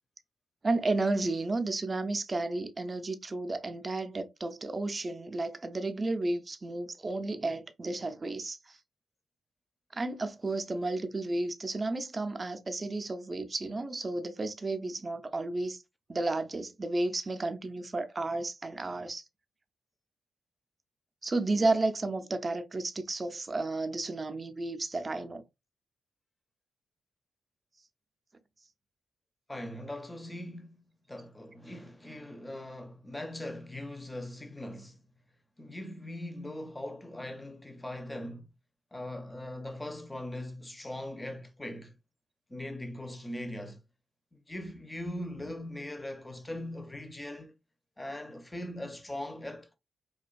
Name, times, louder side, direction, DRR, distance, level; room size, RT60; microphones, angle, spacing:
voice 1, 0.6-8.8 9.9-15.8 16.1-19.2 21.2-25.4, right 2 dB, 35° right, 0.4 m, -32 dB
voice 2, 29.5-35.0 35.6-38.5 38.9-42.0 42.5-43.8 44.3-47.5 48.0-49.8, left 1 dB, 15° left, 0.5 m, -40 dB
2.4 x 2.2 x 2.4 m
supercardioid pair, 55°, 0 cm